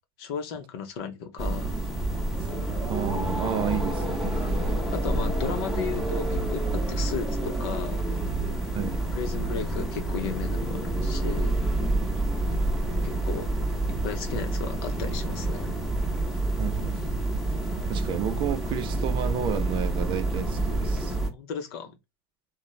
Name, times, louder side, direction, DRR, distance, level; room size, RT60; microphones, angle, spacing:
voice 1, 0.2-1.7 4.5-8.0 9.1-11.6 13.0-13.5 14.0-15.7 21.3-22.0, left 6 dB, 65° left, 0.7 m, -35 dB
sound 1, 1.4-21.3, right 2 dB, ahead, 0.8 m, -28 dB
voice 2, 2.9-4.4 8.7-9.0 16.6-17.2 17.9-21.2, right 8 dB, 35° right, 0.4 m, -31 dB
3.0 x 2.1 x 2.2 m
hypercardioid pair, 110°, 14 cm